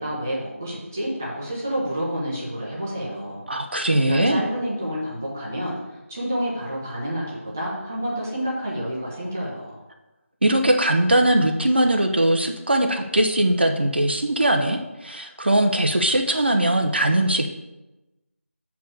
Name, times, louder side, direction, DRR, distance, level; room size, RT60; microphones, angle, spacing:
voice 1, 0.0-3.4 4.0-9.8, equal, 10° right, -7 dB, 0.9 m, -29 dB
voice 2, 3.5-4.4 10.4-17.5, right 1 dB, 50° right, 4 dB, 0.8 m, -20 dB
6.9 x 4.6 x 6.4 m, 1.0 s
figure-of-eight pair, 180°, 8 cm